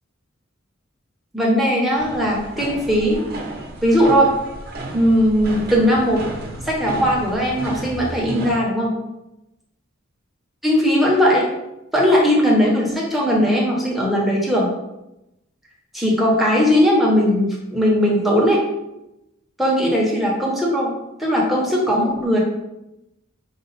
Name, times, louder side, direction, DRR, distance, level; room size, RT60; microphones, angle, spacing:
voice 1, 1.3-3.2 3.8-4.3 4.9-6.2 6.6-8.9 10.6-11.5 11.9-14.7 15.9-18.6 19.6-20.9 21.2-22.4, equal, ahead, -4 dB, 0.9 m, -18 dB
sound 1, 2.0-8.5, right 1 dB, 50° right, 0.8 m, -33 dB
5.4 x 2.4 x 4.0 m, 0.92 s
head